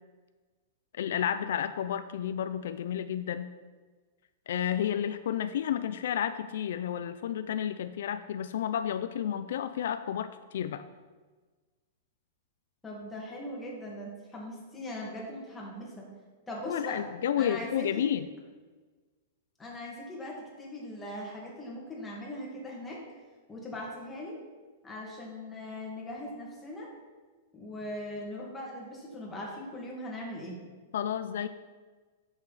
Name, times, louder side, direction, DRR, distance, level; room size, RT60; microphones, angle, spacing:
voice 1, 0.9-3.5 4.5-10.8 16.7-18.3 30.9-31.5, left 9 dB, 70° left, 11 dB, 0.4 m, -31 dB
voice 2, 12.8-16.1 16.5-17.0 17.4-18.1 19.6-23.0 23.5-24.4 24.8-26.9 27.5-30.6, left 1 dB, 10° left, -3 dB, 1.9 m, -40 dB
9.5 x 6.7 x 4.1 m, 1.4 s
supercardioid pair, 160°, 0 cm